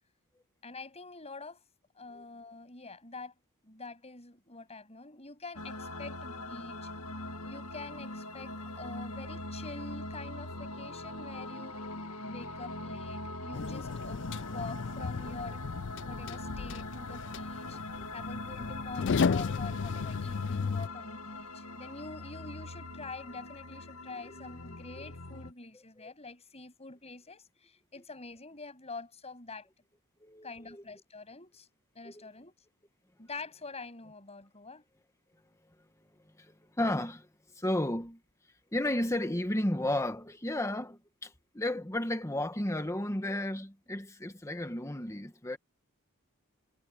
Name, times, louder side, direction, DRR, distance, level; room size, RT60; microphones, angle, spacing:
voice 1, 0.6-1.6 2.0-3.3 3.6-6.9 7.4-11.9 12.2-15.7 16.0-17.8 18.1-29.7 30.4-31.7 31.9-32.5 33.2-34.8, left 3 dB, 30° left, 7.8 m, -46 dB
sound 1, 5.5-25.5, left 2 dB, 80° left, 2.1 m, -42 dB
sound 2, 13.5-20.9, left 5 dB, 55° left, 0.4 m, -34 dB
voice 2, 30.2-30.8 32.0-32.2 36.4-37.3 37.5-38.2 38.7-45.6, left 1 dB, 15° left, 1.5 m, -33 dB
head